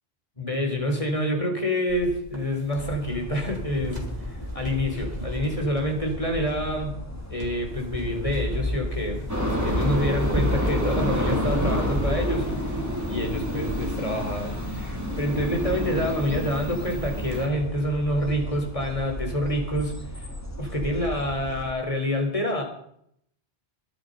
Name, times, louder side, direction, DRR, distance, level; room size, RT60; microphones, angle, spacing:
voice 1, 0.4-6.9 7.3-12.5 13.1-20.3 20.6-22.6, equal, 35° left, 3 dB, 4.1 m, -27 dB
sound 1, 1.9-3.0 3.3-6.3 6.9-7.0 7.4-7.6 7.9-14.0 14.2-14.3 14.6-14.7 15.1-15.3 15.7-15.8 16.1-16.5 16.8-17.7, equal, 40° right, 2.9 m, -33 dB
sound 2, 2.7-21.7, equal, 15° left, 2.2 m, -36 dB
sound 3, 9.3-17.5, equal, 15° right, 3.8 m, -28 dB
22.5 x 11.5 x 5.4 m, 0.70 s
omnidirectional pair, 1.0 m